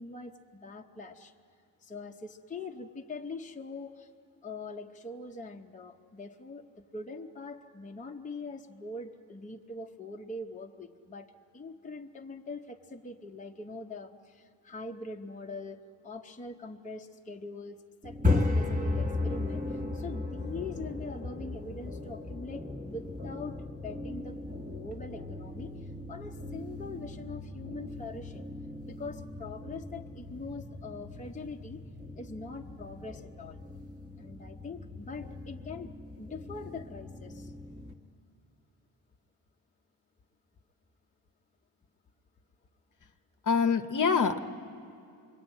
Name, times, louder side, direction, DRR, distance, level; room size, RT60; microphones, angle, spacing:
voice 1, 0.0-1.3 1.8-4.1 4.4-24.4 24.7-28.5 28.9-31.8 32.1-33.6 34.2-37.5, left 3 dB, 20° left, 2 dB, 0.7 m, -43 dB
sound 1, 18.0-37.9, left 2 dB, 20° right, 1.3 m, -36 dB
voice 2, 43.5-44.5, left 5 dB, 45° left, 7 dB, 0.9 m, -25 dB
26.0 x 22.0 x 8.9 m, 2.5 s
wide cardioid pair, 160°, 43 cm